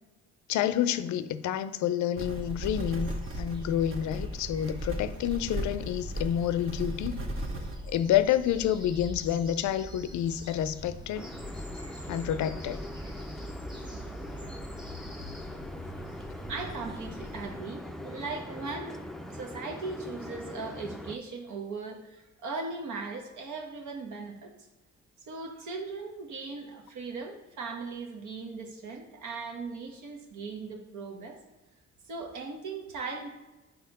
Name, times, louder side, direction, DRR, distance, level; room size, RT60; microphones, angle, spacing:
voice 1, 0.5-7.2 7.9-11.3 12.1-12.8, left 10 dB, 70° left, 0.4 m, -29 dB
sound 1, 2.2-7.8, right 1 dB, 45° right, 0.9 m, -36 dB
sound 2, 2.3-17.5, equal, 15° right, 1.1 m, -44 dB
sound 3, 11.1-21.2, left 1 dB, ahead, 0.4 m, -42 dB
voice 2, 16.5-19.0 19.3-24.5 25.3-31.4 32.1-33.3, right 4 dB, 75° right, 1.1 m, -38 dB
4.3 x 4.2 x 5.3 m
cardioid pair, 90°, 30 cm